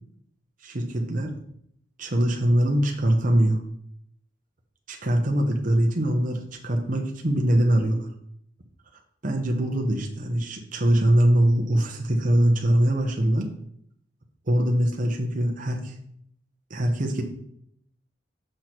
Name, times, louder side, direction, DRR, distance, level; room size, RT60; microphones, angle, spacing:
voice 1, 0.6-1.3 2.0-3.6 4.9-8.1 9.2-13.5 14.5-16.0 16.7-17.2, right 1 dB, 40° right, 2 dB, 0.9 m, -22 dB
6.5 x 6.0 x 4.5 m, 0.69 s
head